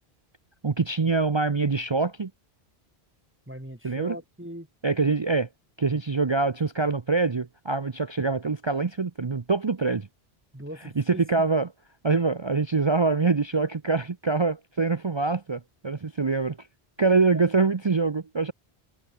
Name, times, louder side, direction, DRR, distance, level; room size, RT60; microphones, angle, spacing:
voice 1, 0.6-2.3 3.8-4.2 4.8-5.5 5.8-10.1 11.0-11.7 12.0-16.7 17.0-18.5, right 4 dB, 30° right, 0.7 m, -24 dB
voice 2, 3.5-4.7 10.5-11.2 17.3-17.4, equal, 10° right, 2.3 m, -39 dB
omnidirectional pair, 1.1 m